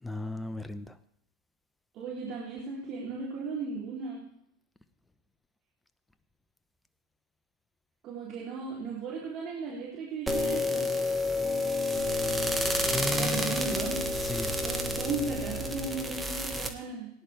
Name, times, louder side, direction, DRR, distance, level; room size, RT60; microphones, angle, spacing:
voice 1, 0.0-1.0 12.9-13.7 14.2-14.6, left 2 dB, 10° left, 12 dB, 1.0 m, -35 dB
voice 2, 1.9-4.3 8.0-10.9 13.1-14.0 14.6-17.1, right 4 dB, 45° right, -4 dB, 3.6 m, -36 dB
sound 1, 10.3-16.7, left 1 dB, 10° right, 1.8 m, -29 dB
19.0 x 10.5 x 3.5 m, 0.74 s
hypercardioid pair, 95°, 0 cm